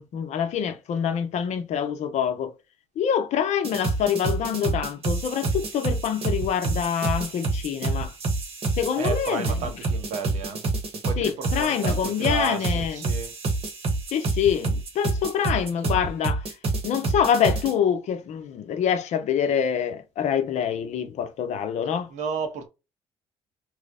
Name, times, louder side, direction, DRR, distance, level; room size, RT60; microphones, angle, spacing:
voice 1, 0.0-2.5 3.0-8.1 8.8-9.7 11.2-13.1 14.1-16.5 16.8-22.1, left 8 dB, 70° left, 0.6 m, -26 dB
sound 1, 3.6-17.7, right 3 dB, 55° right, 1.1 m, -27 dB
voice 2, 9.0-10.6 11.0-13.3 22.1-22.7, right 5 dB, 75° right, 0.9 m, -32 dB
3.1 x 2.0 x 3.6 m
supercardioid pair, 65°, 12 cm